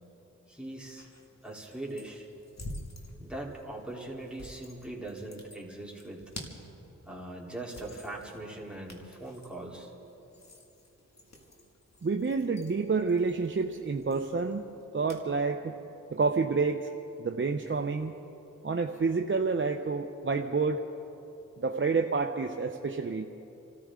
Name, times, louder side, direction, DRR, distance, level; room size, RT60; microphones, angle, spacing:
voice 1, 0.5-1.0 1.4-2.2 3.2-6.2 7.1-9.9, right 2 dB, 5° right, -3 dB, 3.4 m, -41 dB
sound 1, 0.7-15.3, left 1 dB, 55° left, 2.2 m, -50 dB
voice 2, 12.0-14.6 14.9-15.8 16.1-16.9 17.2-18.2 18.6-20.8 21.6-23.3, right 4 dB, 40° right, 4 dB, 0.8 m, -29 dB
28.0 x 14.0 x 3.7 m, 2.9 s
cardioid pair, 45°, 31 cm